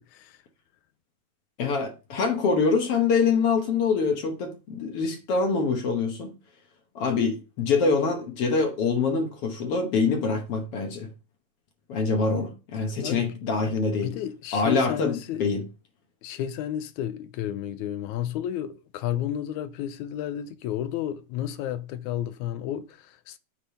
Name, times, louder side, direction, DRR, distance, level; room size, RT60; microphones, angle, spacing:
voice 1, 1.6-6.3 7.0-11.1 11.9-14.1 14.5-15.6, left 4 dB, 60° left, 1.8 m, -25 dB
voice 2, 13.0-13.3 14.0-15.4 16.2-23.4, left 11 dB, 85° left, 2.0 m, -32 dB
8.4 x 3.7 x 6.6 m
omnidirectional pair, 3.4 m